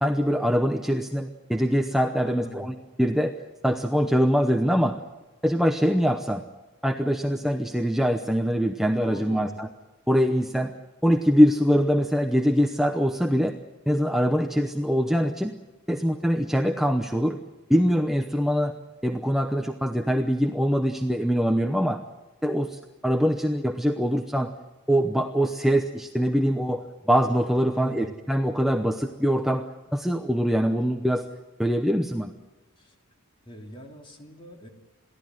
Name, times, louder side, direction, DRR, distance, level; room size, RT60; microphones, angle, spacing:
voice 1, 0.0-3.3 3.6-5.0 5.4-6.4 6.8-9.7 10.1-10.7 11.0-13.5 13.9-15.5 15.9-17.4 17.7-18.7 19.0-22.0 22.4-24.5 24.9-29.7 29.9-31.3 31.6-32.3, equal, ahead, 5 dB, 0.8 m, -23 dB
voice 2, 2.2-2.7 9.0-9.6 27.7-28.1 32.8-32.9 33.4-34.7, right 1 dB, 25° left, 2 dB, 3.1 m, -41 dB
22.5 x 16.0 x 9.4 m, 1.1 s
head